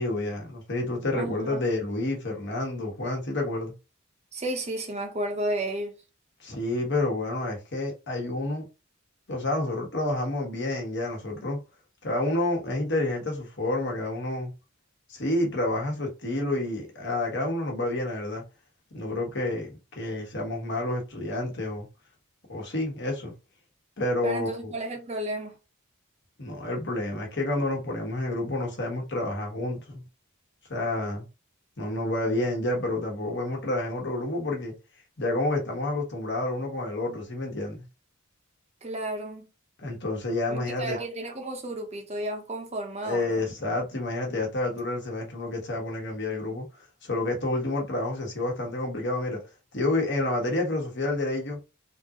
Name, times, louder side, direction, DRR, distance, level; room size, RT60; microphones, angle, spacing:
voice 1, 0.0-3.7 6.4-8.7 9.3-11.6 12.0-14.5 15.1-18.4 18.9-21.9 22.5-23.3 24.0-24.7 26.4-30.0 30.7-31.2 31.8-34.7 35.2-37.8 39.8-41.0 43.0-46.7 47.0-49.4 49.7-51.6, left 2 dB, 55° left, 1.3 m, -29 dB
voice 2, 1.1-1.7 4.3-6.0 24.2-25.6 38.8-39.5 40.5-43.4, right 1 dB, 30° right, 0.7 m, -32 dB
3.6 x 2.5 x 2.9 m
head